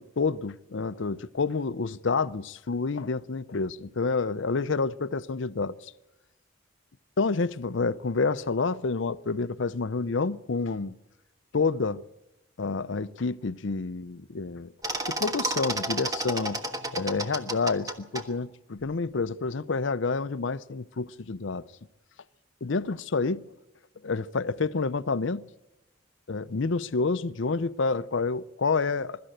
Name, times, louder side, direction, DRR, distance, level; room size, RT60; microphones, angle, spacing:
voice 1, 0.0-5.9 7.2-10.9 11.5-12.0 12.6-14.7 15.1-16.6 16.9-21.6 22.6-23.4 24.0-25.4 26.3-29.2, left 4 dB, 70° left, 0.6 m, -28 dB
sound 1, 14.8-18.2, right 2 dB, 15° right, 1.4 m, -31 dB
23.0 x 13.0 x 9.1 m
head